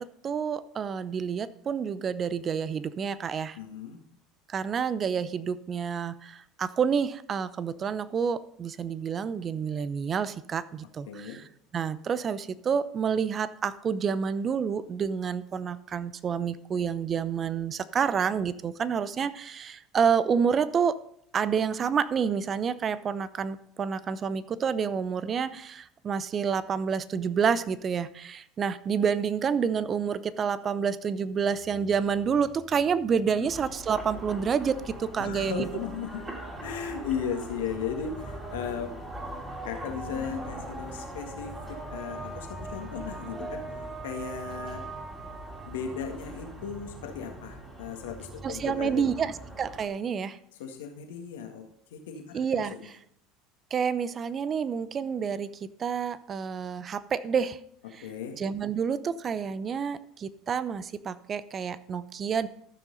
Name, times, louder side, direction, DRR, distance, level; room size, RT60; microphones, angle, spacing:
voice 1, 0.0-3.6 4.5-11.4 11.7-21.0 21.3-35.7 48.4-50.4 52.3-52.9 53.7-57.6 57.9-58.0 58.4-62.5, right 6 dB, 35° right, 16 dB, 0.6 m, -29 dB
voice 2, 3.6-4.0 11.1-11.4 33.3-33.5 35.2-36.2 36.6-38.9 39.7-43.6 44.0-44.8 45.7-49.2 50.6-51.7 51.9-52.7 58.0-58.4, left 7 dB, 80° left, 4 dB, 1.8 m, -36 dB
sound 1, 33.5-49.9, right 1 dB, 15° right, 3.3 m, -40 dB
14.0 x 6.2 x 4.0 m, 0.69 s
hypercardioid pair, 85°, 0 cm